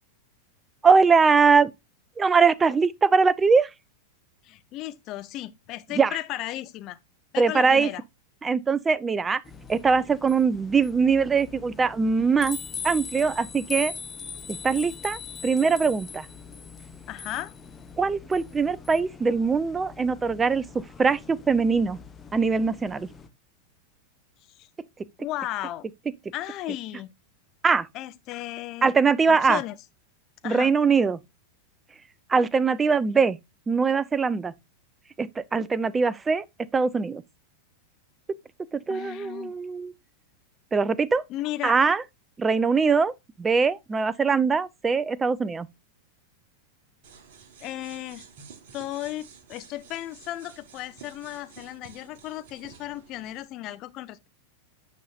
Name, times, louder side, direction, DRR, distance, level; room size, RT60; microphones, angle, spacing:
voice 1, 0.8-1.7 2.2-3.7 6.0-6.2 7.4-7.9 8.4-9.4 9.7-12.6 12.8-13.9 14.5-16.3 18.0-20.6 21.0-22.0 22.3-23.1 27.6-27.9 28.8-29.6 30.4-31.2 32.3-33.4 33.7-34.5 35.2-36.4 36.7-37.2 38.7-39.9 40.7-41.2 41.6-42.0 42.4-43.1 43.4-45.7, right 5 dB, 15° right, 0.5 m, -22 dB
voice 2, 4.4-7.0 7.3-8.0 17.1-17.5 24.6-24.7 25.2-25.8 26.3-27.1 27.9-28.9 29.3-29.7 30.4-30.7 38.9-39.5 41.3-41.8 47.6-48.2 48.7-54.3, left 15 dB, 35° left, 0.8 m, -35 dB
sound 1, 9.4-23.3, left 5 dB, 20° left, 1.0 m, -41 dB
sound 2, 47.0-53.4, right 6 dB, 55° right, 1.5 m, -50 dB
9.7 x 5.6 x 2.5 m
figure-of-eight pair, 90°, 0 cm